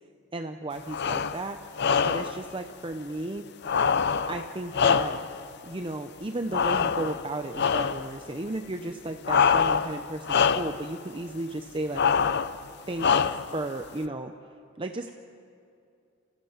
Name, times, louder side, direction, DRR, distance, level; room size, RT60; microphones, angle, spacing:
voice 1, 0.3-1.6 2.0-3.4 4.3-5.2 5.6-12.0 12.9-13.2 13.5-14.3 14.8-15.1, right 2 dB, 25° right, 6 dB, 0.7 m, -34 dB
sound 1, 0.9-1.4 1.8-2.4 3.6-5.4 6.5-7.3 7.6-8.1 9.2-10.0 10.2-10.8 11.9-12.6 13.0-13.6, left 6 dB, 55° left, 0.6 m, -24 dB
28.0 x 16.0 x 7.2 m, 2.5 s
head